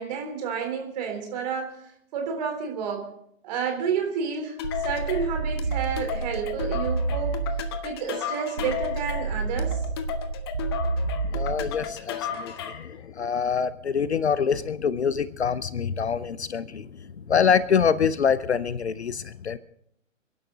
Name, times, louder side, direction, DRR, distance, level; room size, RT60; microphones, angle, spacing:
voice 1, 0.0-1.8 2.1-3.1 3.4-7.4 7.8-9.8, right 6 dB, 30° right, 3 dB, 3.6 m, -30 dB
sound 1, 4.6-12.9, left 9 dB, 20° left, 0.8 m, -34 dB
sound 2, 4.6-7.9 8.6-11.9, right 4 dB, 65° right, 2.2 m, -29 dB
voice 2, 11.3-16.9 17.3-19.6, left 7 dB, 55° left, 17 dB, 0.7 m, -25 dB
29.0 x 11.0 x 3.9 m, 0.72 s
figure-of-eight pair, 130°, 40 cm